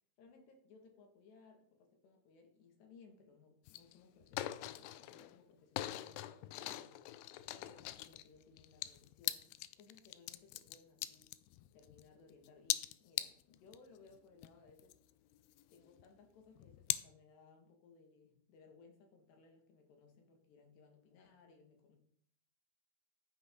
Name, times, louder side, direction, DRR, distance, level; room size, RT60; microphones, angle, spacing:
voice 1, 0.2-7.0 7.5-9.5 9.8-11.3 11.7-14.9 15.7-22.0, left 4 dB, 70° left, 3 dB, 4.0 m, -63 dB
sound 1, 3.7-3.9 4.2-5.4 5.8-12.1 12.4-13.8 14.1-14.2 14.4-16.0 16.6-17.0, left 15 dB, 90° left, 2.3 m, -41 dB
12.0 x 9.5 x 3.9 m, 0.62 s
omnidirectional pair, 5.3 m